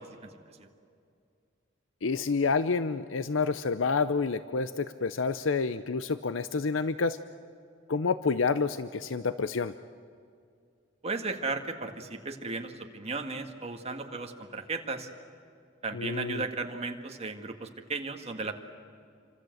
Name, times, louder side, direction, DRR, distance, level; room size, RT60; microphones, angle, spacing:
voice 1, 2.0-7.2 7.9-9.7 15.9-16.4, left 4 dB, 85° left, 13 dB, 0.6 m, -28 dB
voice 2, 11.0-15.1 15.8-18.5, right 3 dB, 35° right, 4 dB, 1.9 m, -35 dB
28.0 x 25.5 x 7.9 m, 2.3 s
head